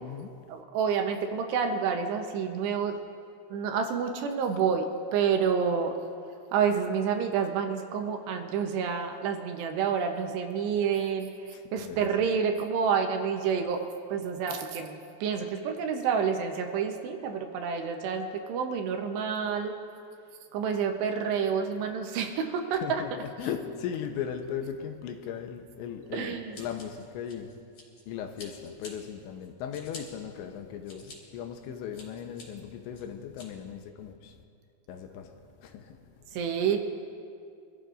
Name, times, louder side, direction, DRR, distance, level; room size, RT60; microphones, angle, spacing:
voice 1, 0.5-3.0 3.5-4.9 5.1-5.9 6.5-11.3 11.7-13.8 14.1-19.8 20.5-23.0 26.1-26.6 36.3-36.8, right 6 dB, 75° right, 4 dB, 2.8 m, -28 dB
voice 2, 22.8-27.5 28.1-34.1 34.9-35.3 35.7-35.8, left 8 dB, 85° left, 5 dB, 3.0 m, -37 dB
Scissors, 26.5-28.0 28.4-28.9 29.4-30.0 30.6-31.2 31.6-32.4 32.9-33.5, left 3 dB, 45° left, 4.5 m, -47 dB
25.5 x 15.0 x 2.5 m, 2.4 s
omnidirectional pair, 5.4 m